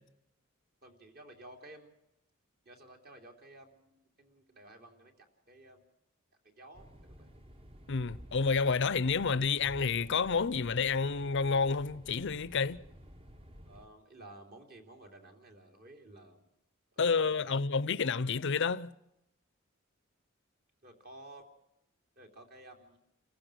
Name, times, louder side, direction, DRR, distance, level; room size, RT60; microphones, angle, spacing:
voice 1, 0.8-1.9 2.6-5.8 6.4-7.3 13.6-16.5 16.9-17.6 20.8-21.5 22.2-23.0, right 1 dB, 45° right, 3.3 m, -54 dB
sound 1, 6.7-13.9, equal, 25° right, 1.2 m, -52 dB
voice 2, 7.9-12.8 17.0-18.9, left 5 dB, 60° left, 0.7 m, -29 dB
28.5 x 15.5 x 6.4 m
head